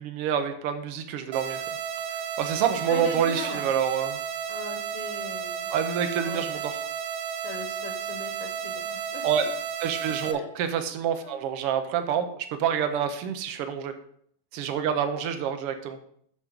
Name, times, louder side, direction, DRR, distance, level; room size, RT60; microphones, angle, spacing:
voice 1, 0.0-1.6 2.4-4.2 5.7-6.7 9.2-9.4 9.8-13.9 14.5-16.0, right 8 dB, 65° right, 8 dB, 1.5 m, -27 dB
sound 1, 1.3-10.3, right 8 dB, 85° right, 2.3 m, -33 dB
voice 2, 2.9-3.7 4.5-5.7 6.2-6.4 7.4-9.5 10.2-10.5 11.2-11.4, left 5 dB, 60° left, 4 dB, 1.8 m, -39 dB
12.0 x 4.2 x 5.1 m, 0.65 s
omnidirectional pair, 3.4 m